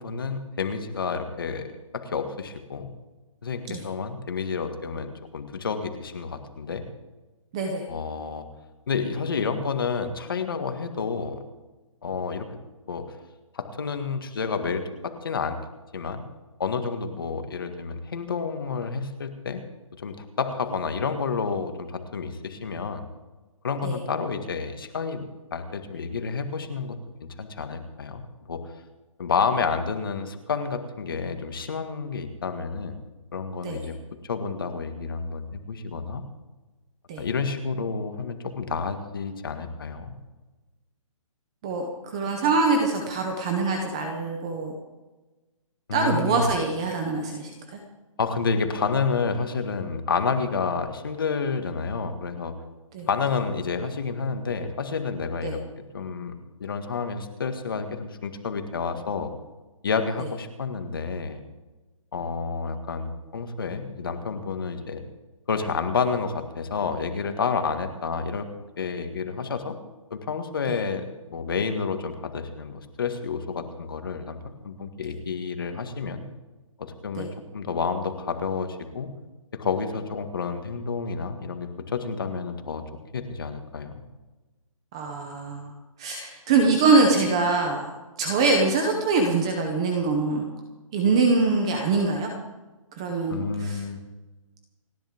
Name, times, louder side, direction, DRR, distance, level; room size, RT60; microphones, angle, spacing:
voice 1, 0.0-1.7 1.9-2.9 3.4-6.8 7.9-8.5 8.9-11.4 12.0-12.5 12.9-13.1 13.5-15.6 15.9-16.2 16.6-19.6 20.0-23.0 23.6-25.2 25.5-28.6 29.2-33.0 33.3-34.0 34.3-36.2 37.2-40.1 45.9-46.5 48.2-52.5 53.1-56.3 56.6-59.3 59.8-61.4 62.1-65.0 65.5-68.5 68.8-69.8 70.1-74.4 74.6-76.2 76.8-79.1 79.5-82.8 83.1-84.0 93.3-94.0, left 5 dB, 40° left, 7 dB, 1.9 m, -29 dB
voice 2, 7.5-7.8 23.8-24.0 33.6-33.9 37.1-37.2 41.6-44.7 45.9-47.5 52.9-53.1 55.4-55.5 70.7-70.8 77.2-77.3 84.9-85.7 86.0-87.9 88.2-90.4 90.9-92.3 92.9-93.8, right 3 dB, 10° right, 3 dB, 0.6 m, -24 dB
29.5 x 10.5 x 3.6 m, 1.2 s
hypercardioid pair, 180°, 18 cm